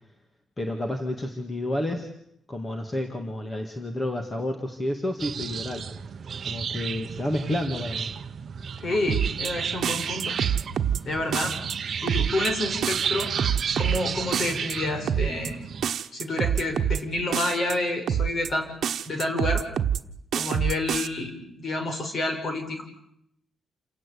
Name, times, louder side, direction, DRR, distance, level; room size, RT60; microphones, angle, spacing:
voice 1, 0.6-2.1 2.5-5.8 6.5-8.1, left 1 dB, 20° left, 5 dB, 2.0 m, -30 dB
sound 1, 5.2-15.9, right 7 dB, 45° right, 1.0 m, -32 dB
voice 2, 8.8-10.4 11.1-11.5 12.0-13.3 13.8-15.6 16.1-18.7 19.1-19.6 20.3-22.8, left 2 dB, 40° left, 6 dB, 5.5 m, -29 dB
sound 2, 9.1-9.5 9.8-11.0 11.3-11.7 12.1-12.5 12.8-14.0 14.3-14.7 15.1-15.5 15.8-17.0 17.3-17.7 18.1-18.5 18.8-20.0 20.3-21.1, right 8 dB, 65° right, 1.3 m, -26 dB
29.0 x 18.0 x 8.5 m, 0.75 s
wide cardioid pair, 170°, 0 cm